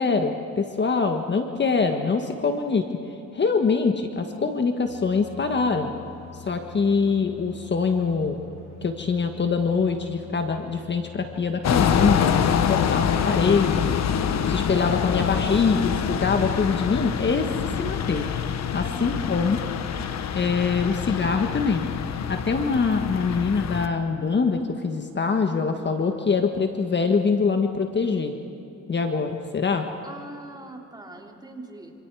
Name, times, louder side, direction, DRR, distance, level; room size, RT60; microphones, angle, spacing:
voice 1, 0.0-2.9 3.3-5.9 6.5-8.4 8.8-13.9 14.5-18.3 18.7-19.6 20.3-21.8 22.3-28.3 28.9-29.9, left 5 dB, 35° left, 5 dB, 1.6 m, -24 dB
sound 1, 4.8-14.6, left 5 dB, 85° left, 6.8 m, -45 dB
sound 2, 11.6-23.9, left 8 dB, 60° left, 1.3 m, -25 dB
voice 2, 18.7-19.3 30.0-31.9, right 2 dB, 15° right, 1 dB, 3.6 m, -42 dB
27.0 x 26.5 x 4.9 m, 2.9 s
cardioid pair, 90°, 30 cm